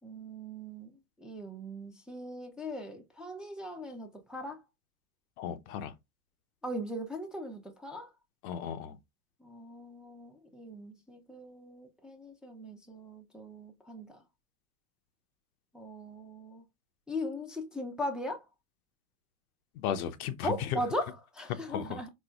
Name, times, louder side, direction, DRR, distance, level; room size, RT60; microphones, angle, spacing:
voice 1, 0.0-4.6 6.6-8.1 9.4-14.2 15.7-16.6 17.1-18.4 20.4-22.1, left 1 dB, ahead, 0.5 m, -39 dB
voice 2, 5.4-5.9 8.4-9.0 19.7-20.8 21.7-22.0, left 9 dB, 75° left, 0.6 m, -35 dB
4.2 x 2.1 x 2.3 m
hypercardioid pair, 80°, 44 cm